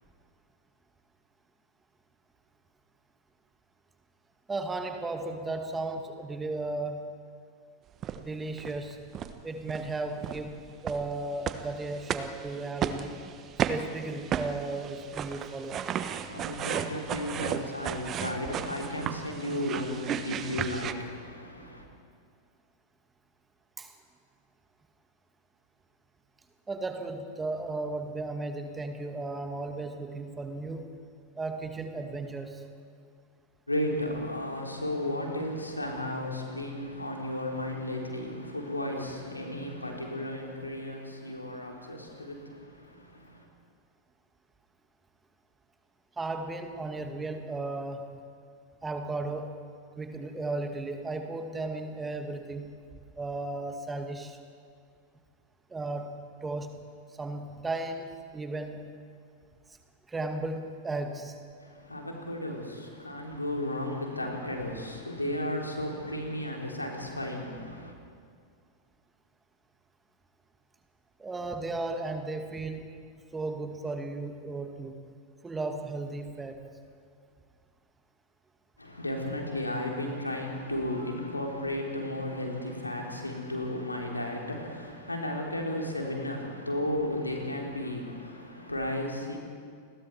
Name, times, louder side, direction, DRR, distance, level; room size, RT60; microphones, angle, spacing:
voice 1, 4.5-7.1 8.1-9.1 9.4-13.2 13.7-15.9 23.8-23.9 26.7-31.0 31.4-32.7 46.2-48.2 48.8-49.6 50.0-52.8 53.2-54.4 55.7-56.9 57.2-58.9 60.1-61.4 71.2-72.9 73.3-75.1 75.4-76.7, right 2 dB, 15° right, 5 dB, 2.1 m, -35 dB
sound 1, 8.0-8.2 8.6-8.8 9.1-9.3 9.7-9.9 10.2-20.9, right 8 dB, 30° right, 1.2 m, -34 dB
voice 2, 16.1-21.9 33.7-43.5 61.6-67.9 78.8-89.4, left 1 dB, 85° left, 1 dB, 3.5 m, -34 dB
30.0 x 20.5 x 4.7 m, 2.2 s
figure-of-eight pair, 90°, 0 cm